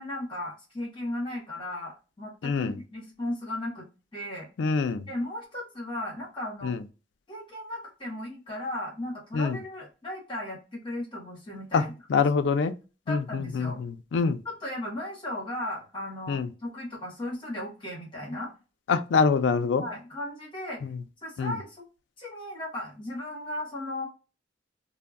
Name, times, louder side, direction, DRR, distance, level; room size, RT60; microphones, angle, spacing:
voice 1, 0.0-3.8 4.1-4.5 5.1-6.7 7.3-11.9 13.1-13.8 14.4-18.5 19.8-20.8 21.2-21.9 22.2-24.1, left 1 dB, 25° left, 0.9 m, -36 dB
voice 2, 2.4-2.8 4.6-5.1 6.6-6.8 9.3-9.6 11.7-11.8 12.1-12.7 13.1-14.4 16.3-16.5 18.9-19.8 20.8-21.0 21.4-21.6, left 5 dB, 75° left, 0.4 m, -25 dB
2.2 x 2.0 x 3.4 m
head